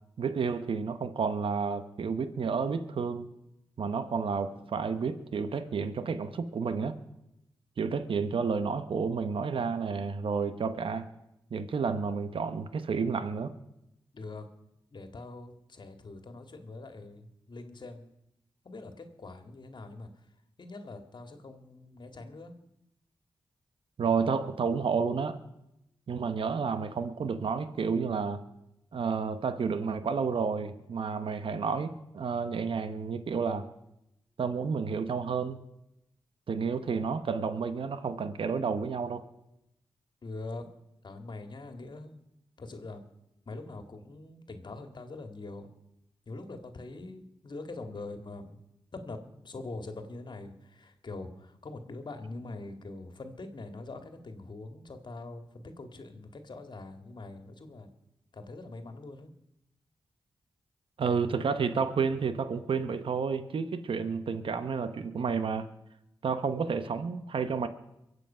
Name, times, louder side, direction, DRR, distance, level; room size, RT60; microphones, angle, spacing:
voice 1, 0.2-3.3 3.8-7.0 7.8-11.1 11.5-13.5 24.0-25.4 26.1-28.4 28.9-33.7 34.4-35.6 36.5-39.2 61.0-65.7 66.2-67.7, right 5 dB, 70° right, 11 dB, 1.0 m, -30 dB
voice 2, 14.1-14.5 14.9-18.0 18.6-20.1 20.6-22.6 40.2-40.7 41.0-42.2 42.6-43.0 43.5-45.7 46.3-48.6 48.9-57.9 58.3-59.3, left 2 dB, 55° left, 7 dB, 2.0 m, -43 dB
23.0 x 8.2 x 5.6 m, 0.86 s
cardioid pair, 50°, 9 cm